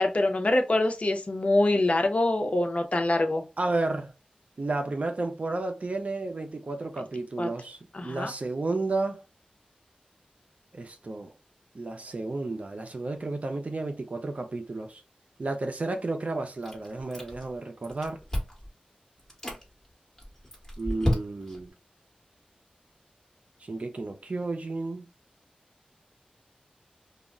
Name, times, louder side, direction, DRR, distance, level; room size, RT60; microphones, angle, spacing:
voice 1, 0.0-3.4 7.4-7.5 7.9-8.3, left 2 dB, 50° left, 0.6 m, -24 dB
voice 2, 3.6-4.1 4.6-9.2 10.7-11.3 11.7-15.0 15.4-18.2 20.8-21.7 23.6-25.1, right 2 dB, 55° right, 0.4 m, -32 dB
Chewing mastication, 16.6-17.6 17.8-18.7 19.2-19.6 20.2-21.6, left 1 dB, 20° left, 1.2 m, -31 dB
2.3 x 2.0 x 3.5 m
cardioid pair, 45°, 3 cm